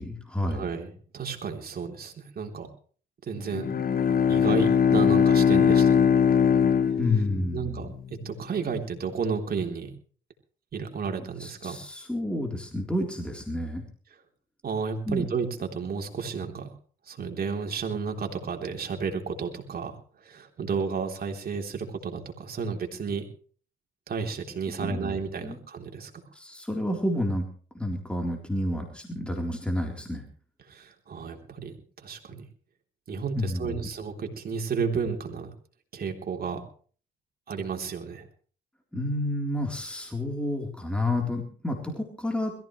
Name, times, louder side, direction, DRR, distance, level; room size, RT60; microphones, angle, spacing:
voice 1, 0.0-0.7 7.0-7.8 11.4-13.8 15.1-15.3 24.8-25.6 26.3-27.5 27.7-30.2 33.4-33.9 38.9-42.5, left 1 dB, 5° left, 1 dB, 3.7 m, -30 dB
voice 2, 0.5-2.7 3.3-3.7 4.3-6.1 7.5-7.9 8.2-9.9 10.7-11.8 14.6-16.7 17.1-20.0 20.2-23.2 24.1-26.2 30.7-32.4 33.1-35.5 35.9-36.6 37.5-38.3, right 5 dB, 50° right, 3 dB, 3.6 m, -32 dB
Bowed string instrument, 3.5-7.8, left 7 dB, 50° left, 1.2 m, -21 dB
22.0 x 15.0 x 3.2 m, 0.43 s
cardioid pair, 90°, 20 cm